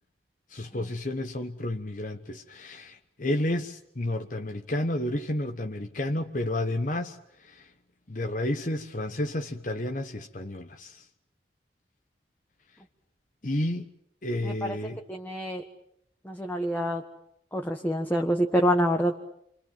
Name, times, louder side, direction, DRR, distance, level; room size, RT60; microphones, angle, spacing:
voice 1, 0.5-7.7 8.1-11.1 13.4-13.9 14.2-15.0, left 1 dB, 45° left, 5 dB, 1.2 m, -31 dB
voice 2, 14.4-14.8 15.1-15.6 16.2-17.0 17.5-19.2, equal, 10° left, 3 dB, 1.3 m, -26 dB
29.5 x 24.5 x 7.7 m, 0.74 s
head